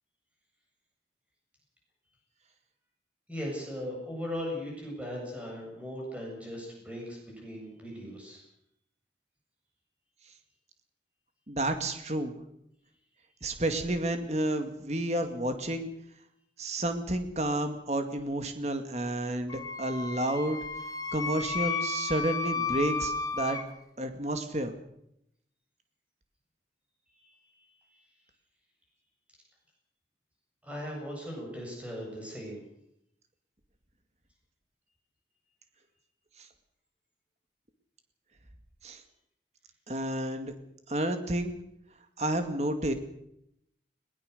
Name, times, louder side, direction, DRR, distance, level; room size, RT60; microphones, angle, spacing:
voice 1, 3.3-8.4 27.2-28.0 30.6-32.6, equal, 5° right, -2 dB, 7.7 m, -39 dB
voice 2, 11.5-12.4 13.4-15.9 16.6-20.6 21.1-23.6 24.0-24.7 38.8-39.0 39.9-40.5 40.9-41.6 42.2-42.9, right 1 dB, 40° right, 7 dB, 2.1 m, -30 dB
Wind instrument woodwind instrument, 19.5-23.6, left 4 dB, 20° left, 1.8 m, -33 dB
21.5 x 21.0 x 6.7 m, 0.76 s
head